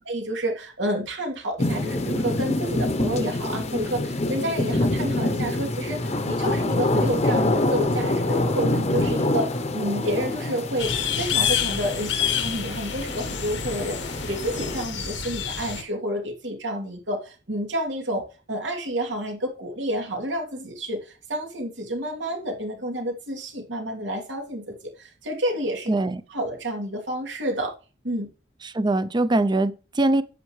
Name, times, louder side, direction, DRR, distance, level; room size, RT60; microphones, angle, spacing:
voice 1, 0.1-26.0 26.3-27.7 28.0-28.3, equal, 90° right, 3.0 m, -29 dB
sound 1, 1.6-14.8, left 2 dB, 40° left, 0.8 m, -26 dB
sound 2, 10.8-15.8, left 8 dB, 90° left, 1.4 m, -28 dB
voice 2, 25.9-26.2 28.6-30.2, right 2 dB, 25° right, 0.5 m, -22 dB
10.0 x 8.2 x 3.2 m
head